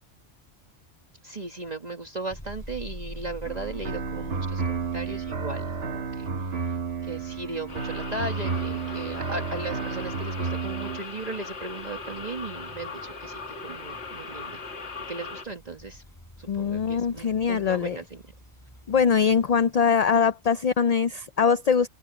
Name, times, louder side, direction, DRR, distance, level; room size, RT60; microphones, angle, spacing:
voice 1, 1.2-6.3 7.0-14.6 15.1-16.0 16.4-18.2, right 2 dB, 40° right, 1.6 m, -37 dB
sound 1, 2.3-19.9, equal, 20° left, 5.5 m, -47 dB
sound 2, 3.5-11.0, right 5 dB, 65° right, 1.6 m, -31 dB
sound 3, 7.7-15.4, left 4 dB, 90° left, 1.8 m, -39 dB
voice 2, 16.5-18.0 18.9-21.9, left 6 dB, 50° left, 0.5 m, -22 dB
open air
omnidirectional pair, 1.1 m